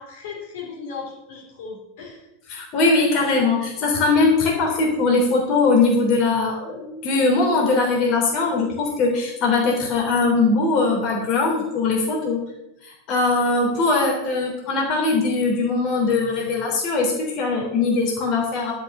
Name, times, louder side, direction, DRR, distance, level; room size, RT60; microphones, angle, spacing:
voice 1, 0.0-2.2, left 5 dB, 55° left, -1 dB, 3.4 m, -36 dB
voice 2, 2.5-12.4 12.8-18.7, left 3 dB, 40° left, -1 dB, 3.4 m, -21 dB
12.0 x 6.2 x 7.2 m, 0.86 s
figure-of-eight pair, 90°, 0 cm